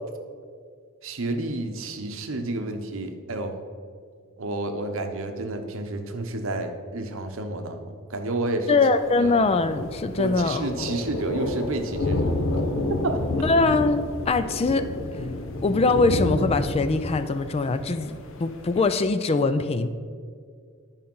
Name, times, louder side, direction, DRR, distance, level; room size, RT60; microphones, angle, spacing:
voice 1, 1.0-3.5 4.4-8.8 9.1-9.3 10.2-12.3 12.8-13.2, right 2 dB, 65° right, 6 dB, 0.9 m, -30 dB
voice 2, 8.7-10.7 13.4-14.9 15.6-19.9, left 3 dB, 30° left, 11 dB, 0.4 m, -22 dB
Thunder, 9.0-18.9, left 2 dB, 65° left, 0.8 m, -30 dB
10.0 x 5.2 x 5.4 m, 2.1 s
head